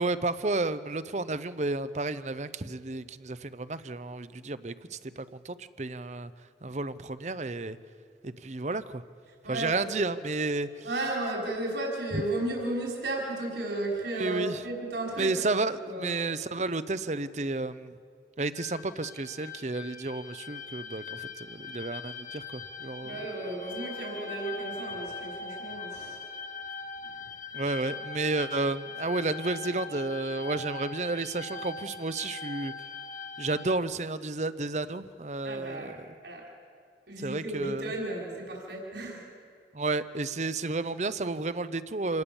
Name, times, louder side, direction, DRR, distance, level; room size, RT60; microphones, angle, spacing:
voice 1, 0.0-6.3 6.6-7.8 8.2-9.0 9.5-10.9 12.1-12.2 14.1-14.6 15.2-18.0 18.4-23.2 27.5-32.7 33.4-36.1 37.2-37.9 39.7-42.2, right 3 dB, 40° right, 14 dB, 0.7 m, -32 dB
voice 2, 9.4-10.1 10.8-15.4 15.8-16.1 23.0-26.2 27.0-27.2 35.4-36.0 36.2-36.5 37.1-39.3, right 2 dB, 80° right, -2 dB, 5.3 m, -34 dB
sound 1, 18.5-33.8, left 4 dB, 45° left, 1.5 m, -41 dB
27.5 x 19.0 x 7.1 m, 2.2 s
head